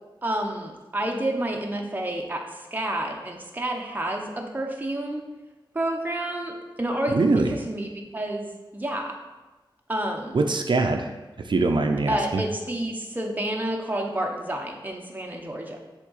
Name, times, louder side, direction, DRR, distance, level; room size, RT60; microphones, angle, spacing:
voice 1, 0.2-2.4 2.7-5.2 5.7-7.9 8.1-9.2 9.9-10.5 12.1-15.8, right 1 dB, 20° right, 1 dB, 0.8 m, -29 dB
voice 2, 7.1-7.5 10.3-12.4, right 3 dB, 65° right, 5 dB, 0.6 m, -23 dB
7.4 x 3.7 x 4.0 m, 1.2 s
wide cardioid pair, 85°, 9 cm